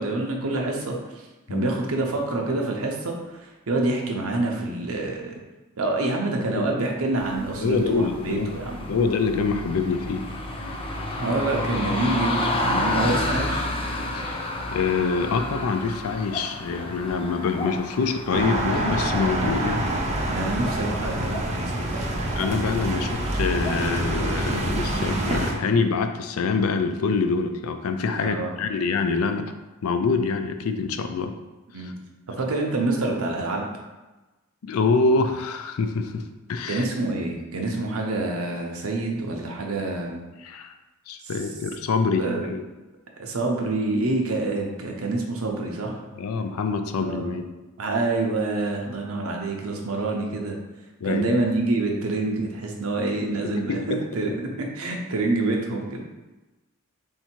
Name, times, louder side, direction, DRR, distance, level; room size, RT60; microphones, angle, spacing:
voice 1, 0.0-5.4 5.8-8.8 11.2-13.7 20.3-22.1 28.2-28.6 31.7-31.9 32.4-33.7 36.7-40.2 42.2-42.5 43.2-46.0 47.0-47.4 47.8-50.6 51.0-56.0, right 2 dB, 80° right, 1 dB, 0.7 m, -27 dB
voice 2, 6.5-6.8 7.6-8.5 8.9-10.3 14.1-14.4 14.7-19.9 22.4-29.4 29.8-31.3 31.8-31.9 34.6-36.2 36.5-36.8 40.4-40.7 41.1-42.6 46.2-47.5 51.0-51.4 53.4-54.0, left 4 dB, 85° left, 8 dB, 0.4 m, -25 dB
sound 1, 7.2-23.7, left 1 dB, 25° left, 0.5 m, -31 dB
sound 2, 18.3-25.5, right 1 dB, 30° right, 0.6 m, -26 dB
3.6 x 2.8 x 4.4 m, 1.1 s
head